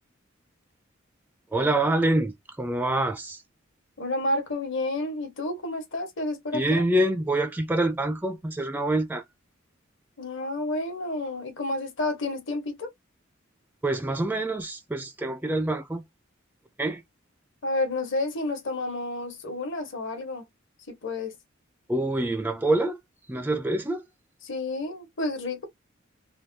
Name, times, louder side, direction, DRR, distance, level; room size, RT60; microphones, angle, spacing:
voice 1, 1.5-3.4 6.5-9.2 13.8-16.0 16.8-17.0 21.9-23.0 23.3-24.1, right 1 dB, 10° right, 0.3 m, -26 dB
voice 2, 4.0-6.8 10.2-12.9 17.6-20.4 20.9-21.4 24.4-25.6, left 2 dB, 65° left, 1.2 m, -30 dB
3.4 x 2.2 x 2.7 m
head